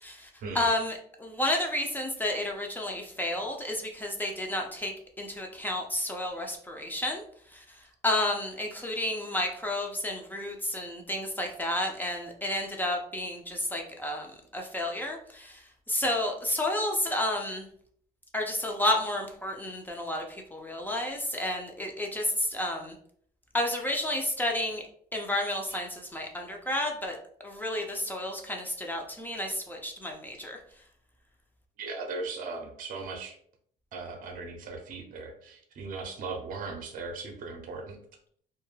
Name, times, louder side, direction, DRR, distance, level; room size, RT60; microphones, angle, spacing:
voice 1, 0.5-7.2 7.5-7.6 8.0-15.6 15.9-17.7 18.3-23.0 23.5-24.8 25.1-27.2 27.4-30.6, left 1 dB, 10° left, 1 dB, 0.4 m, -31 dB
voice 2, 31.8-33.4 33.9-38.0, right 3 dB, 55° right, 3 dB, 0.6 m, -38 dB
2.2 x 2.1 x 3.1 m, 0.62 s
cardioid pair, 110°, 17 cm